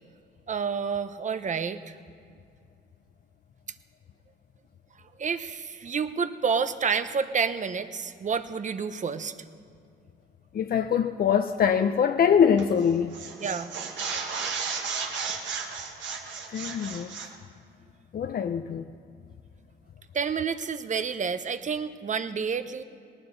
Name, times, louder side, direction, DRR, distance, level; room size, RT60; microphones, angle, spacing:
voice 1, 0.5-1.9 5.2-9.4 13.4-13.7 20.1-22.8, right 6 dB, 40° right, 0.9 m, -29 dB
voice 2, 10.5-13.2 16.5-17.1 18.1-18.9, left 7 dB, 50° left, 0.6 m, -23 dB
sound 1, 12.6-12.8 13.1-17.3, right 5 dB, 70° right, 1.8 m, -34 dB
19.0 x 18.5 x 4.0 m
cardioid pair, 90°, 20 cm